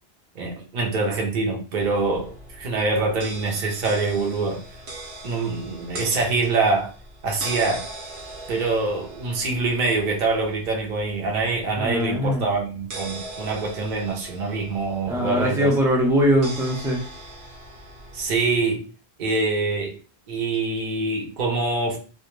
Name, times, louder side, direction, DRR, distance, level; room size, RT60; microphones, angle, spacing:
voice 1, 0.3-4.6 5.2-6.9 7.2-7.9 8.5-15.7 18.1-18.9 19.2-20.0 20.3-22.0, right 3 dB, 50° right, 0.7 m, -25 dB
sound 1, 1.8-18.4, right 2 dB, 85° right, 1.0 m, -40 dB
voice 2, 11.8-12.5 15.1-17.0, equal, 5° right, 0.5 m, -21 dB
2.2 x 2.1 x 3.0 m
omnidirectional pair, 1.1 m